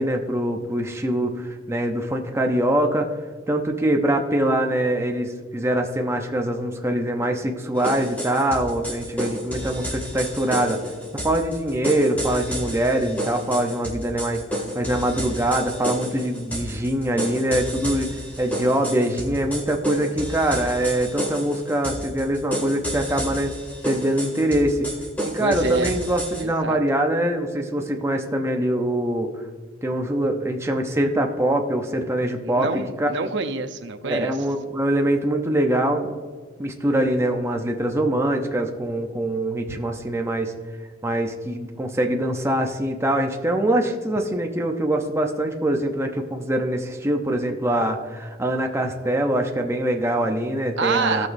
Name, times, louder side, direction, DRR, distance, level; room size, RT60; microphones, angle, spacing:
voice 1, 0.0-3.1 3.5-10.8 11.2-14.4 14.7-23.5 23.8-24.9 25.2-29.3 29.8-32.7 33.0-33.1 34.0-36.1 36.6-40.5 41.0-51.3, right 1 dB, 15° right, 3 dB, 0.7 m, -23 dB
sound 1, 7.8-26.4, equal, 10° left, 2.3 m, -31 dB
voice 2, 25.4-26.0 26.4-26.8 32.4-34.4 50.8-51.3, right 3 dB, 65° right, 8 dB, 0.8 m, -26 dB
17.0 x 6.0 x 2.7 m, 1.5 s
head